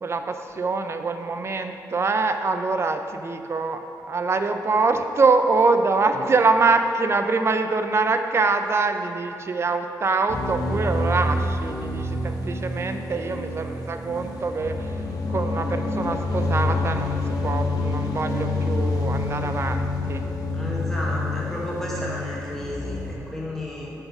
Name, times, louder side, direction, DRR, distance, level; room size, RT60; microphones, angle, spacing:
voice 1, 0.0-14.9 15.3-17.2 17.4-20.2, right 4 dB, 40° right, 7 dB, 0.5 m, -24 dB
sound 1, 10.3-23.1, left 2 dB, 70° left, 1.0 m, -27 dB
voice 2, 20.5-23.9, left 1 dB, 5° left, -6 dB, 1.7 m, -32 dB
8.9 x 4.1 x 6.0 m, 2.7 s
cardioid pair, 90°, 7 cm